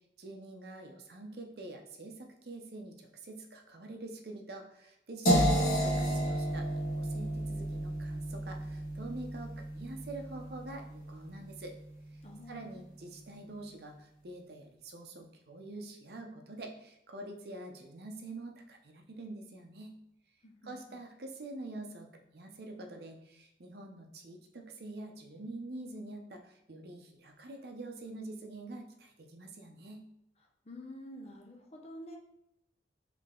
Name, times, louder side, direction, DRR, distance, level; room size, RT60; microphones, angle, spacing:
voice 1, 0.2-6.7 7.0-11.7 12.5-20.0 20.6-30.0, right 2 dB, 60° right, 3 dB, 0.6 m, -46 dB
sound 1, 5.3-11.2, equal, 55° left, 1.2 m, -31 dB
voice 2, 12.2-12.8 20.4-21.0 30.7-32.2, left 1 dB, 35° left, 2 dB, 0.6 m, -48 dB
3.7 x 3.3 x 3.7 m, 0.81 s
head